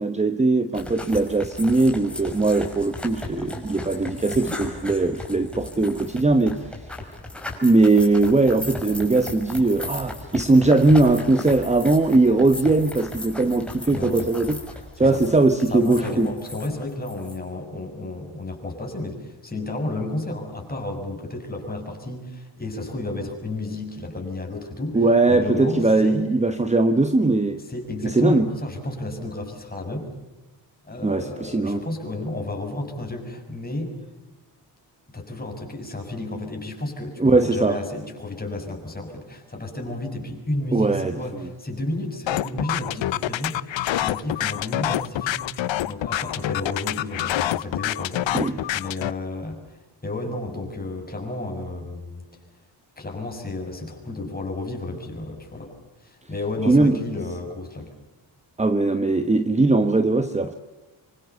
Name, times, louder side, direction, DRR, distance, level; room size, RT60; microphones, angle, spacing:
voice 1, 0.0-6.6 7.6-16.3 24.9-27.6 28.0-28.5 31.0-31.8 37.2-37.8 40.7-41.5 48.3-48.7 56.7-57.0 58.6-60.6, right 2 dB, 15° right, 9 dB, 1.2 m, -20 dB
sound 1, 0.7-17.4, left 2 dB, ahead, 5.8 m, -36 dB
voice 2, 13.9-14.3 15.0-15.2 15.7-26.3 27.7-30.1 30.8-33.9 35.1-49.6 50.0-52.2 53.0-55.7 56.0-57.9, left 2 dB, 20° left, 2 dB, 6.6 m, -32 dB
sound 2, 42.3-49.1, left 13 dB, 80° left, 0.9 m, -26 dB
26.5 x 25.0 x 6.9 m, 1.1 s
wide cardioid pair, 130°, 45 cm